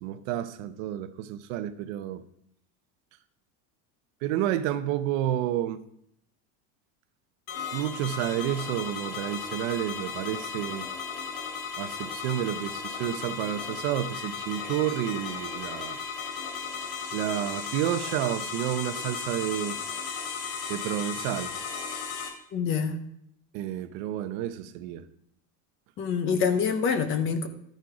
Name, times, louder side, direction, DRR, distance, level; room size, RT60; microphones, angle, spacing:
voice 1, 0.0-2.2 4.2-5.8 7.7-10.9 11.8-16.0 17.1-19.8 20.7-21.5 23.5-25.1, right 12 dB, 55° right, 0.8 m, -30 dB
sound 1, 7.5-22.3, left 6 dB, 85° left, 3.0 m, -35 dB
voice 2, 22.5-23.0 26.0-27.5, left 6 dB, 25° left, 0.8 m, -26 dB
12.5 x 6.6 x 4.8 m
cardioid pair, 175°, 45 cm